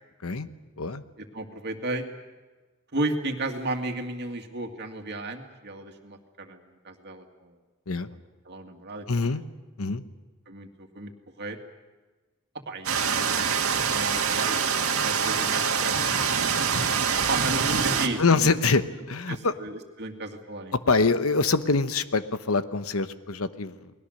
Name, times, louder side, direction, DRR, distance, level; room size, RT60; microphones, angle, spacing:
voice 1, 1.2-2.0 2.9-7.5 8.5-9.4 10.5-11.1 11.4-11.6 12.7-14.6 15.0-16.1 17.3-18.5 19.3-20.7, right 2 dB, 50° right, 4 dB, 2.3 m, -34 dB
voice 2, 9.1-9.4 9.8-10.0 18.2-19.5 20.7-23.9, left 4 dB, 75° left, 11 dB, 1.0 m, -25 dB
sound 1, 12.9-18.1, right 6 dB, 75° right, 2.0 m, -25 dB
29.5 x 20.5 x 6.6 m, 1.3 s
head